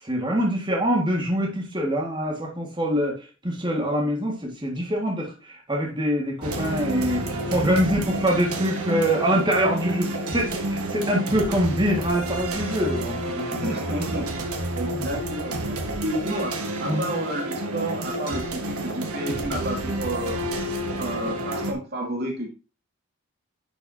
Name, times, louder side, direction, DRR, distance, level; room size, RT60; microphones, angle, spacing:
voice 1, 0.0-13.6 14.9-15.1 16.9-17.1, equal, 20° right, -1 dB, 1.8 m, -25 dB
sound 1, 6.4-21.7, right 1 dB, 90° right, 1.5 m, -29 dB
voice 2, 13.6-14.5 14.7-16.5 16.8-20.4 21.0-22.5, right 1 dB, 45° right, 1 dB, 2.5 m, -31 dB
11.0 x 5.3 x 2.7 m, 0.31 s
head